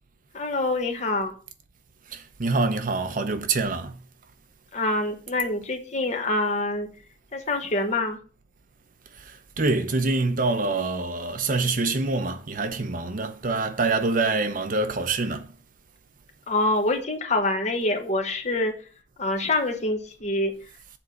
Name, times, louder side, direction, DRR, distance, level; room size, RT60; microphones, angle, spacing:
voice 1, 0.3-1.3 4.7-6.9 7.3-8.2 16.5-18.7 19.2-20.5, left 2 dB, 40° left, 1.4 m, -25 dB
voice 2, 2.1-4.0 9.3-15.5, right 3 dB, 50° right, 0.8 m, -25 dB
7.2 x 4.2 x 6.4 m
head